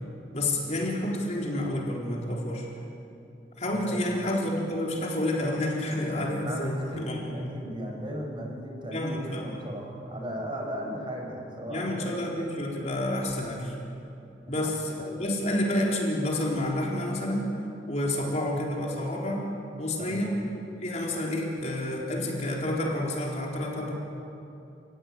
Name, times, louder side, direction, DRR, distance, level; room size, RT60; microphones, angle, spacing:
voice 1, 0.3-2.7 3.6-7.2 8.9-9.5 11.7-13.7 14.5-17.5 17.9-19.5 19.8-20.4 20.8-23.9, left 1 dB, 35° left, -2 dB, 4.1 m, -29 dB
voice 2, 3.7-4.1 6.4-12.1 14.5-14.7 20.0-20.2, equal, 25° right, 1 dB, 5.4 m, -37 dB
29.5 x 17.5 x 9.7 m, 2.7 s
head